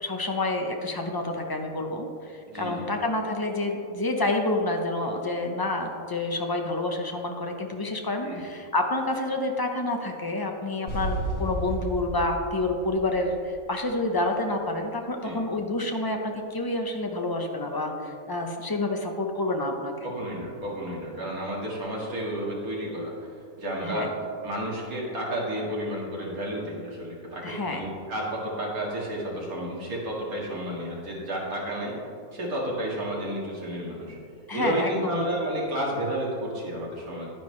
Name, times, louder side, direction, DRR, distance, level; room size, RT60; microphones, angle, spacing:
voice 1, 0.0-20.1 23.8-24.1 27.4-27.9 34.5-35.3, left 2 dB, 25° left, 3 dB, 0.5 m, -28 dB
voice 2, 2.5-2.9 8.2-8.5 15.2-15.4 20.0-24.1 24.4-32.0 32.3-34.2 34.5-37.3, right 1 dB, 85° right, -4 dB, 2.4 m, -31 dB
sound 1, 10.9-13.8, equal, 50° left, 2.0 m, -32 dB
10.5 x 9.9 x 3.2 m, 2.5 s
omnidirectional pair, 1.5 m